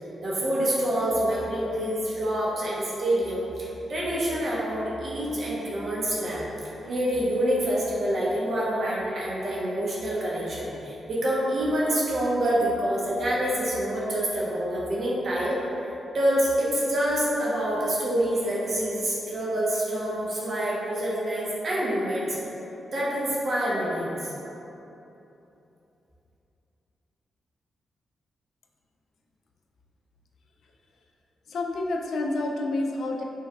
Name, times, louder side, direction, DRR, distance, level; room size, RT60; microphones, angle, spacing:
voice 1, 0.2-3.4 3.9-6.4 6.8-15.6 16.1-22.4 22.9-24.3, right 1 dB, 55° right, -6 dB, 1.0 m, -26 dB
voice 2, 31.5-33.2, left 2 dB, 70° left, 1 dB, 0.4 m, -28 dB
5.5 x 3.3 x 2.4 m, 2.9 s
cardioid pair, 100°, 0 cm